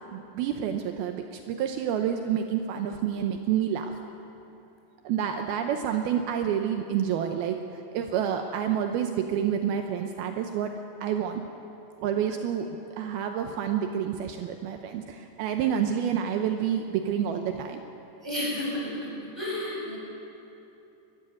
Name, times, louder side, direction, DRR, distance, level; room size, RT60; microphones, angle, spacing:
voice 1, 0.1-4.0 5.0-7.6 7.9-10.7 11.0-11.4 12.0-12.7 13.0-17.8, right 9 dB, 80° right, 5 dB, 2.3 m, -28 dB
voice 2, 18.2-20.0, left 1 dB, 5° right, -4 dB, 6.2 m, -33 dB
22.0 x 14.5 x 9.5 m, 2.9 s
omnidirectional pair, 5.3 m